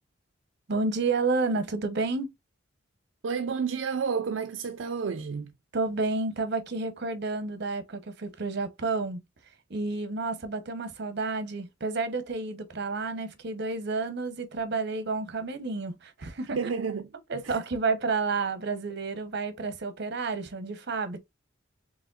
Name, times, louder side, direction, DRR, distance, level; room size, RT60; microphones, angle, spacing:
voice 1, 0.7-2.3 5.7-9.2 9.7-16.6 17.3-21.2, right 3 dB, 60° right, 0.9 m, -30 dB
voice 2, 3.2-5.5 16.6-17.1 17.4-17.6, right 5 dB, 75° right, 0.5 m, -30 dB
4.8 x 3.4 x 2.4 m
head